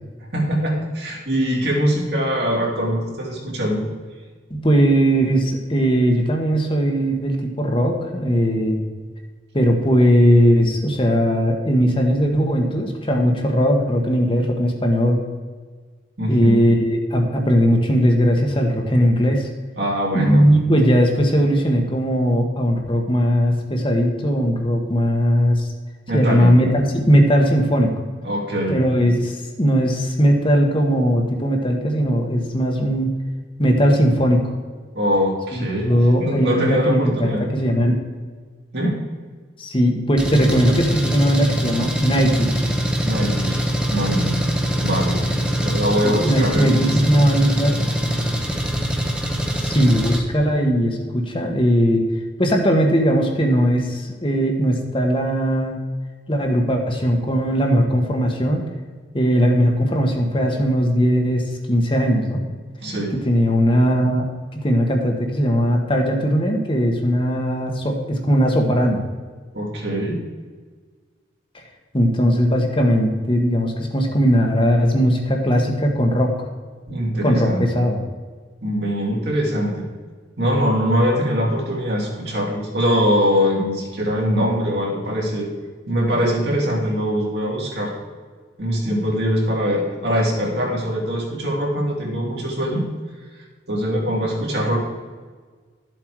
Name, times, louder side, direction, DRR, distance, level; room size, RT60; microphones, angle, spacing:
voice 1, 0.3-3.8 16.2-16.6 19.8-20.4 26.1-26.5 28.2-28.8 34.9-35.9 36.2-37.5 38.7-39.0 43.0-43.6 43.9-44.4 44.8-45.2 45.6-47.0 62.8-63.1 69.5-70.2 76.9-77.6 78.6-79.9 80.4-85.5 85.9-87.9 88.6-92.8 93.7-94.8, equal, 60° right, -2 dB, 3.0 m, -22 dB
voice 2, 4.5-8.8 9.5-15.2 16.3-19.5 20.1-25.7 26.1-27.9 28.7-33.1 33.6-34.5 35.8-38.0 39.6-42.7 46.0-47.8 49.6-52.1 52.4-55.8 56.3-58.7 59.1-62.4 63.1-64.2 64.5-69.0 71.9-76.3 77.2-78.0, equal, 30° left, 2 dB, 1.4 m, -18 dB
Engine, 40.2-50.2, equal, 5° right, 1.2 m, -23 dB
12.5 x 7.6 x 4.8 m, 1.5 s
head